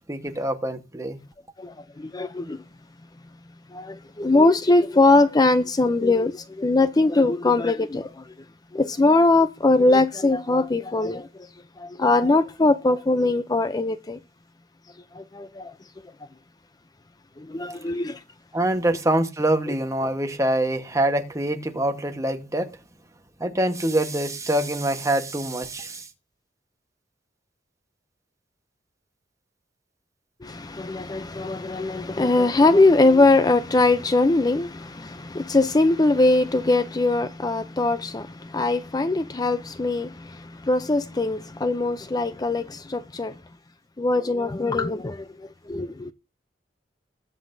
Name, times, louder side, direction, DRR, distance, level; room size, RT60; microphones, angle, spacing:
voice 1, 0.1-1.2 18.5-22.7 23.4-26.1, right 1 dB, 20° right, 1.2 m, -25 dB
voice 2, 1.6-2.6 3.7-8.3 8.7-11.5 11.8-14.2 15.1-15.7 17.4-18.2 30.4-43.3 44.0-46.1, left 2 dB, 20° left, 0.5 m, -21 dB
20.0 x 7.7 x 2.7 m
head